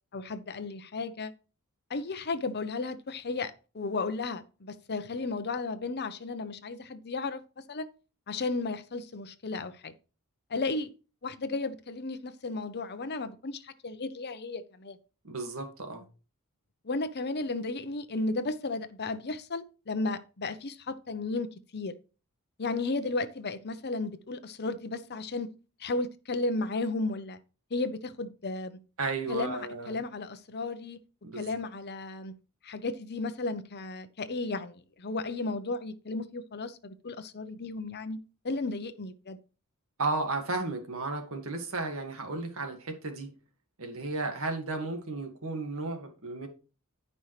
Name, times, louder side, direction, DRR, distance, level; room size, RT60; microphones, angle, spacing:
voice 1, 0.1-1.3 1.9-7.9 8.3-9.9 10.5-10.9 11.2-15.0 16.8-21.9 22.6-25.5 25.8-27.4 27.7-28.8 29.3-31.0 31.3-32.3 32.6-38.2 38.4-39.4, left 3 dB, 50° left, 0.8 m, -34 dB
voice 2, 15.2-16.0 29.0-30.0 31.2-31.5 40.0-43.3 43.8-46.5, right 3 dB, 65° right, 2.0 m, -34 dB
14.0 x 5.4 x 3.3 m
head